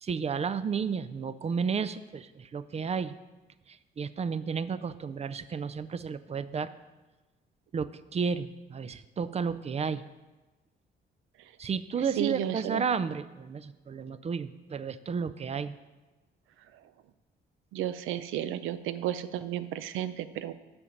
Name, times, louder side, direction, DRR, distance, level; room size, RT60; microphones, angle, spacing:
voice 1, 0.0-3.2 3.7-6.7 7.7-10.1 11.6-15.8, right 6 dB, 30° right, 14 dB, 0.4 m, -32 dB
voice 2, 12.2-12.8 17.7-20.5, right 11 dB, 90° right, 13 dB, 0.5 m, -33 dB
6.9 x 5.1 x 7.1 m, 1.2 s
cardioid pair, 90°, 20 cm